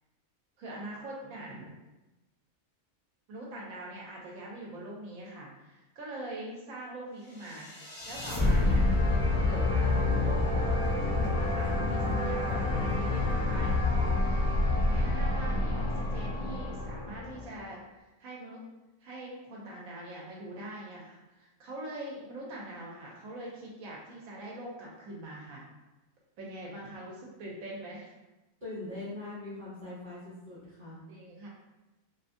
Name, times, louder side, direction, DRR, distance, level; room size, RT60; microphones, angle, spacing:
voice 1, 0.6-1.7 3.3-7.7 8.1-8.9 9.4-14.4 14.9-17.8 18.2-18.6 19.0-25.6 26.4-28.1 31.1-31.5, right 1 dB, 75° right, -3 dB, 1.0 m, -43 dB
sound 1, 7.4-17.6, left 2 dB, 15° left, 0.5 m, -28 dB
voice 2, 28.6-31.0, left 2 dB, 40° right, -12 dB, 0.9 m, -42 dB
2.5 x 2.5 x 2.5 m, 1.0 s
omnidirectional pair, 1.5 m